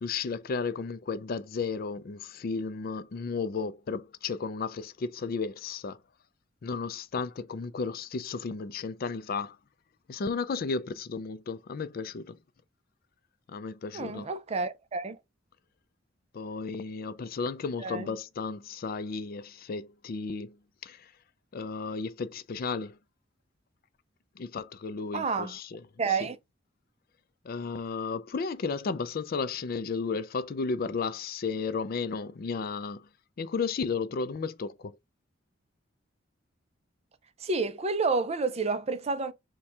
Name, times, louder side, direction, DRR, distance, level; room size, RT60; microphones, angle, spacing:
voice 1, 0.0-6.0 6.6-9.6 10.1-12.4 13.5-14.3 16.3-20.6 20.8-21.1 21.5-23.0 24.4-25.8 26.1-26.3 27.4-33.1 33.4-35.0, left 4 dB, 50° left, 0.4 m, -33 dB
voice 2, 13.9-15.2 17.8-18.1 25.1-25.6 26.0-26.4 37.4-39.3, right 4 dB, 30° right, 0.5 m, -29 dB
4.3 x 2.3 x 4.6 m
head